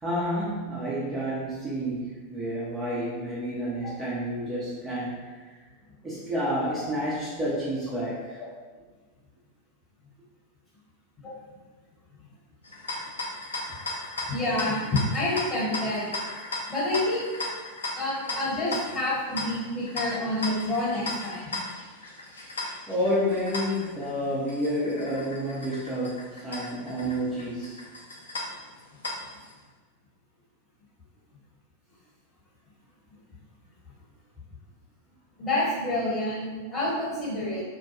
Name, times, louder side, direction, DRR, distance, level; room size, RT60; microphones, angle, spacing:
voice 1, 0.0-5.5 6.0-8.4 22.4-27.8, equal, 15° right, -9 dB, 0.6 m, -30 dB
sound 1, 12.6-29.5, left 2 dB, 70° left, 0.4 m, -37 dB
voice 2, 14.3-16.1 16.7-17.2 17.9-21.6 35.4-37.6, left 1 dB, 20° left, -6 dB, 1.1 m, -28 dB
2.4 x 2.1 x 2.8 m, 1.4 s
figure-of-eight pair, 90°, 0 cm